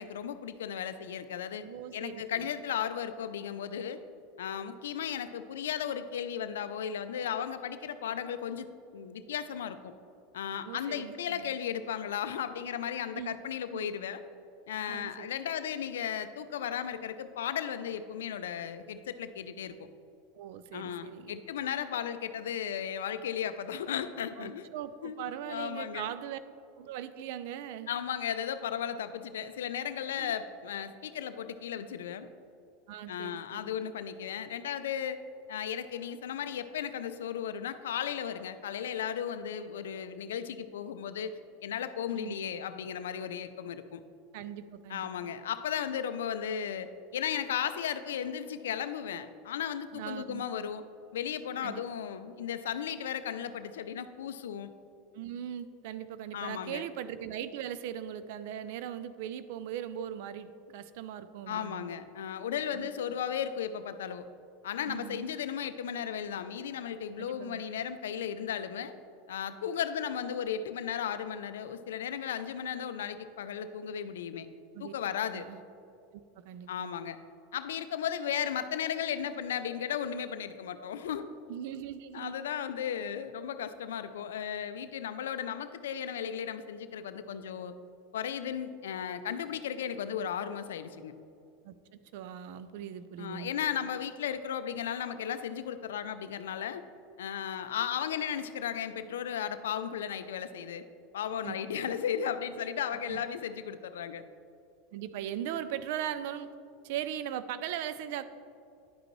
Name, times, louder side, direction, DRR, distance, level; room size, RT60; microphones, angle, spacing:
voice 1, 0.0-1.6 1.9-4.0 4.4-8.7 8.9-9.9 10.3-14.2 14.7-19.7 20.7-24.7 25.0-26.1 27.9-32.3 33.1-35.2 35.5-44.0 44.9-50.8 51.1-54.7 56.3-56.8 61.5-64.3 64.6-68.9 69.3-74.5 74.8-75.5 76.7-77.2 77.5-81.3 82.1-87.7 88.1-91.1 93.2-96.8 97.2-100.8 101.1-104.2, left 8 dB, 90° left, 10 dB, 0.3 m, -35 dB
voice 2, 1.6-2.5 10.6-11.5 13.1-13.4 13.7-13.9 14.9-15.3 20.4-21.4 24.4-26.4 26.8-27.9 30.2-30.4 32.9-33.6 42.1-42.4 44.3-45.3 49.9-50.4 51.6-51.8 55.1-62.0 62.7-62.9 64.9-65.3 67.2-67.6 74.7-74.9 75.3-75.6 76.1-76.9 81.5-82.4 91.6-91.7 92.1-93.5 101.4-101.6 101.9-102.0 103.1-103.2 104.9-106.5 106.8-108.2, right 10 dB, 65° right, 13 dB, 0.3 m, -39 dB
9.9 x 5.1 x 3.1 m, 2.5 s
supercardioid pair, 115°, 0 cm